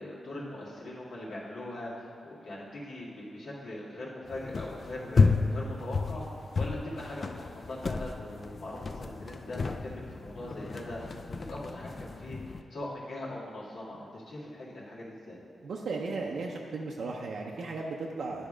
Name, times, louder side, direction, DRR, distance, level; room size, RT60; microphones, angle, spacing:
voice 1, 0.0-15.4, left 1 dB, 90° left, -7 dB, 1.9 m, -41 dB
sound 1, 4.3-12.6, left 4 dB, 45° left, 0.3 m, -32 dB
voice 2, 15.6-18.5, right 3 dB, 75° right, -1 dB, 0.6 m, -35 dB
10.0 x 3.6 x 4.9 m, 2.5 s
wide cardioid pair, 100°, 0 cm